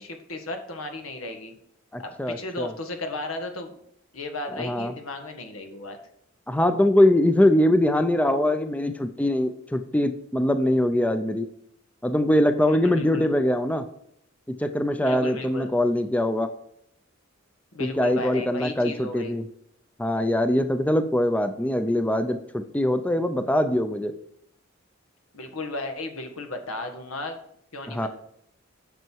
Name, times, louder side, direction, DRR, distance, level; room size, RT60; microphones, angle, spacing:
voice 1, 0.0-1.6 2.0-3.8 4.1-6.0 12.7-13.3 15.0-15.7 17.7-19.3 25.3-27.4 27.7-28.1, left 2 dB, 90° left, 5 dB, 1.6 m, -35 dB
voice 2, 1.9-2.7 4.5-4.9 6.5-11.5 12.0-13.8 14.5-16.5 17.8-19.5 20.0-24.1 27.9-28.1, left 1 dB, 5° left, 9 dB, 0.5 m, -22 dB
9.3 x 6.6 x 4.6 m, 0.73 s
head